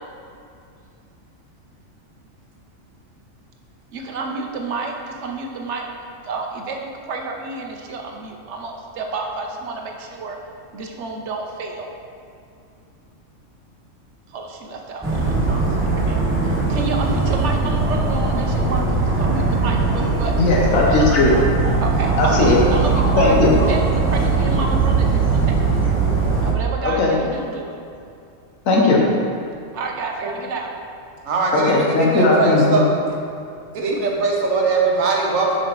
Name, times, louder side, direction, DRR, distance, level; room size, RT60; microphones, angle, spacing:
voice 1, 3.9-5.9 6.2-10.4 10.7-11.9 14.3-15.3 15.8-20.3 21.8-25.9 26.4-27.8 29.7-30.7, right 3 dB, 65° right, 2 dB, 0.9 m, -30 dB
Dog, 15.0-26.5, right 4 dB, 15° right, 0.5 m, -20 dB
voice 2, 20.4-21.4 22.2-22.6 23.2-23.5 26.8-27.1 28.7-29.0 31.5-32.8, left 3 dB, 80° left, -2 dB, 1.3 m, -17 dB
voice 3, 31.2-32.9 33.7-35.6, right 3 dB, 85° right, -1 dB, 1.3 m, -21 dB
7.2 x 5.5 x 3.0 m, 2.5 s
omnidirectional pair, 1.4 m